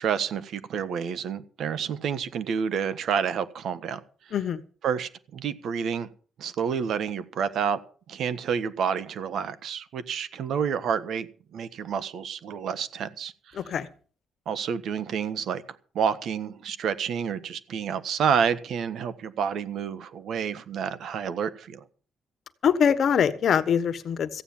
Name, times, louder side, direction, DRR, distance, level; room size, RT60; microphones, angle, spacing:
voice 1, 0.0-4.0 4.8-6.1 6.4-7.8 8.1-13.3 14.5-15.6 15.9-21.8, right 7 dB, 70° right, 15 dB, 1.3 m, -29 dB
voice 2, 13.6-13.9 22.6-24.3, left 7 dB, 60° left, 13 dB, 1.3 m, -23 dB
15.0 x 9.2 x 7.2 m, 0.43 s
cardioid pair, 90°, 0 cm